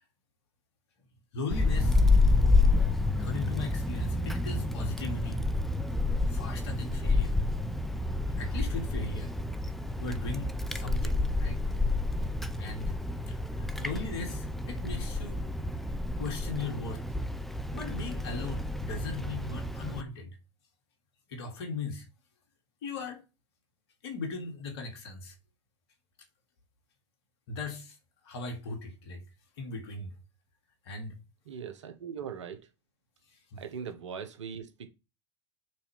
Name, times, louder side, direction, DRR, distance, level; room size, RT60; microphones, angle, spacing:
voice 1, 1.3-2.0 3.2-5.4 6.3-7.4 8.4-9.3 10.0-11.6 12.6-13.0 13.3-15.4 16.2-17.0 17.7-20.4 21.3-22.1 22.8-23.2 24.0-25.3 27.5-28.0 28.2-29.2 29.6-30.1 30.8-31.2 33.5-33.6, left 3 dB, 65° left, 2.7 m, -38 dB
Wind, 1.5-20.0, left 2 dB, ahead, 0.8 m, -29 dB
voice 2, 31.4-32.7 33.6-34.9, right 7 dB, 80° right, 1.4 m, -40 dB
6.2 x 4.3 x 5.9 m
hypercardioid pair, 100°, 15 cm